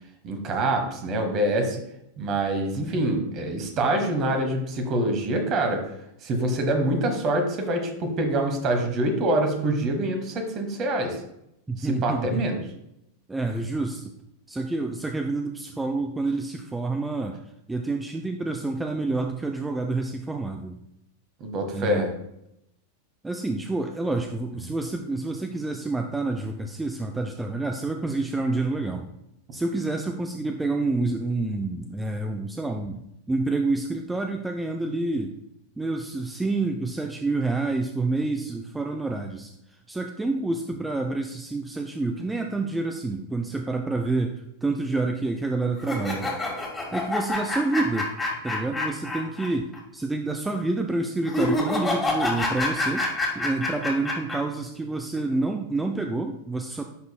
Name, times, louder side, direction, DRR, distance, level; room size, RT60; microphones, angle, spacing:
voice 1, 0.2-1.8 2.2-5.8 6.2-11.2 11.8-12.6 21.4-22.1, right 1 dB, 35° right, 5 dB, 1.3 m, -25 dB
voice 2, 11.7-12.4 13.3-14.1 14.5-17.4 17.7-20.8 21.7-22.1 23.2-29.1 29.5-33.0 33.3-35.4 35.8-39.5 39.9-46.3 46.9-48.1 48.4-53.1 53.3-56.8, right 3 dB, 10° right, 4 dB, 0.5 m, -28 dB
sound 1, 45.8-49.5 49.7-49.8 51.3-54.4, left 2 dB, 10° left, 1.8 m, -27 dB
10.0 x 4.0 x 2.3 m, 0.80 s
figure-of-eight pair, 90°, 0 cm